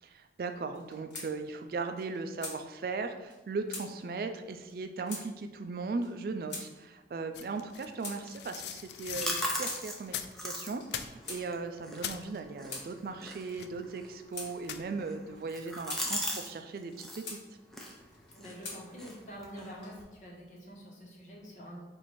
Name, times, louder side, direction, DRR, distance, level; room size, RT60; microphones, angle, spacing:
voice 1, 0.0-17.4, right 4 dB, 55° right, 7 dB, 0.3 m, -38 dB
sound 1, 0.7-1.3 1.6-1.7 2.0-2.6 3.3-3.4 3.7-3.9 4.7-4.8 5.1-5.3 6.0-6.1 6.5-6.7 7.4-8.2 9.0-9.8 10.6-10.9 11.3-11.4 12.2-12.9 13.7-13.9 14.3-14.5 15.4-16.0 16.7-17.4 18.1-18.8 19.6-20.1, left 3 dB, 90° left, 1.3 m, -43 dB
sound 2, 7.3-10.4 10.8-11.5 11.8-12.3 13.5-13.9 14.6-15.0, left 9 dB, 70° left, 0.3 m, -40 dB
sound 3, 8.8-16.5 16.8-17.3 17.7-20.0, equal, ahead, 0.5 m, -40 dB
voice 2, 18.3-21.8, equal, 45° left, -3 dB, 1.2 m, -46 dB
4.6 x 2.6 x 4.2 m, 1.2 s
head